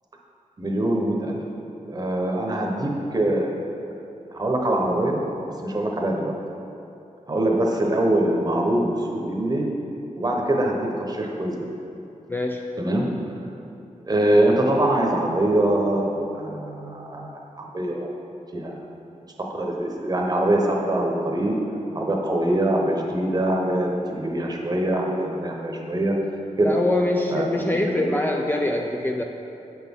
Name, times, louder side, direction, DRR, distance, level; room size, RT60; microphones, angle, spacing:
voice 1, 0.6-1.4 1.9-3.5 4.3-5.2 5.6-6.3 7.3-9.7 10.1-11.5 12.8-13.1 14.1-16.1 16.3-18.1 18.5-18.8 19.5-21.6 21.9-23.9 24.2-26.1 26.6-26.7 27.3-28.2, right 1 dB, 30° right, 0 dB, 0.9 m, -23 dB
voice 2, 12.3-12.7 26.6-29.2, left 2 dB, 15° left, 1 dB, 0.4 m, -24 dB
7.6 x 6.1 x 3.6 m, 2.8 s
wide cardioid pair, 105°, 13 cm